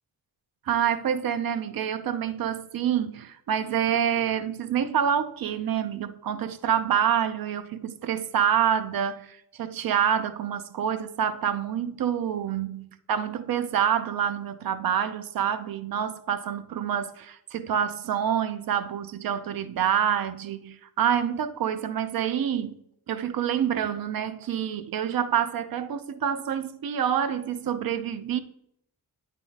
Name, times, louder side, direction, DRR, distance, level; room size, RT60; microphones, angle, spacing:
voice 1, 0.7-22.8 23.1-28.4, right 9 dB, 65° right, 0.5 m, -27 dB
9.0 x 3.6 x 4.0 m
wide cardioid pair, 155°, 38 cm